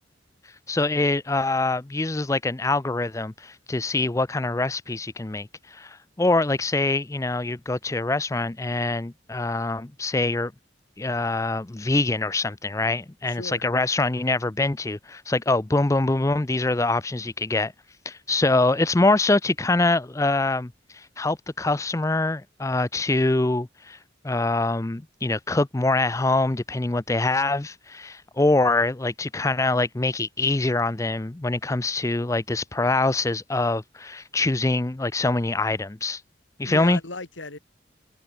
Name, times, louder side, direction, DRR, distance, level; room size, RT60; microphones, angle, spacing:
voice 1, 0.7-10.5 11.0-17.7 18.1-24.0 24.2-36.2 36.6-37.0, left 2 dB, 15° left, 0.5 m, -24 dB
voice 2, 13.3-13.6 36.6-37.6, left 3 dB, 85° left, 2.9 m, -36 dB
head